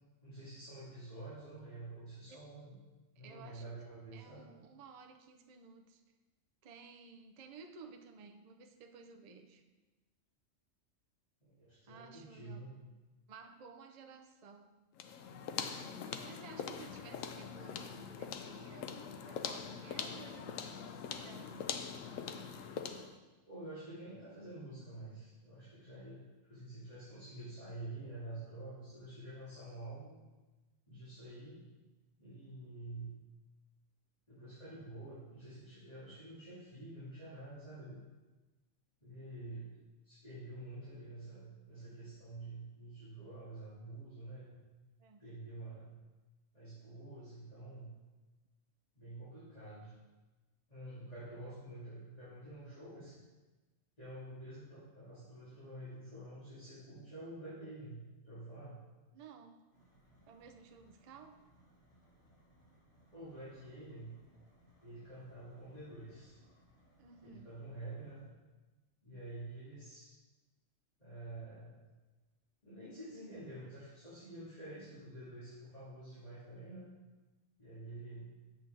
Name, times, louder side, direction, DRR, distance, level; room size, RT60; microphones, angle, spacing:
voice 1, 0.2-2.8 3.2-4.4 11.5-12.7 23.4-26.2 26.5-30.1 30.9-31.6 32.2-33.2 34.3-38.0 39.0-39.7 40.0-44.6 45.2-46.0 46.5-47.9 49.0-49.9 50.7-53.1 54.0-58.8 63.1-64.1 64.8-66.4 67.2-68.2 69.0-70.1 71.0-71.8 72.6-76.9 77.6-78.3, right 2 dB, 30° left, -12 dB, 2.6 m, -48 dB
voice 2, 3.2-3.6 4.1-6.0 6.6-9.6 11.9-12.7 13.3-14.7 16.2-20.6 21.1-21.7 45.0-45.2 59.1-59.7 60.3-61.5 67.0-67.5, right 5 dB, 50° right, 5 dB, 0.5 m, -55 dB
sound 1, 15.0-23.2, left 7 dB, 80° left, 1.0 m, -43 dB
sound 2, 59.7-68.3, equal, 50° left, 3.0 m, -67 dB
7.7 x 7.1 x 3.9 m, 1.2 s
omnidirectional pair, 1.4 m